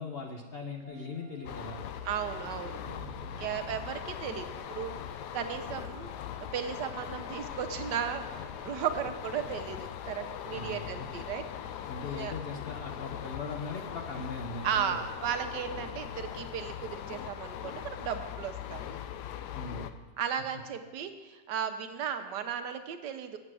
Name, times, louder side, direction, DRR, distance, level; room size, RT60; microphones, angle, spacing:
voice 1, 0.0-1.8 10.5-11.1 11.9-15.0 19.5-19.9, left 3 dB, 50° left, 2 dB, 0.7 m, -40 dB
sound 1, 0.8-9.1 10.5-10.6, right 3 dB, 45° right, 1.3 m, -53 dB
sound 2, 1.5-19.9, left 9 dB, 80° left, 1.2 m, -40 dB
voice 2, 2.0-2.8 3.4-6.1 6.5-11.4 12.1-12.3 14.6-19.0 20.2-23.4, right 8 dB, 85° right, 8 dB, 1.4 m, -35 dB
8.5 x 7.8 x 6.1 m, 1.2 s
omnidirectional pair, 1.8 m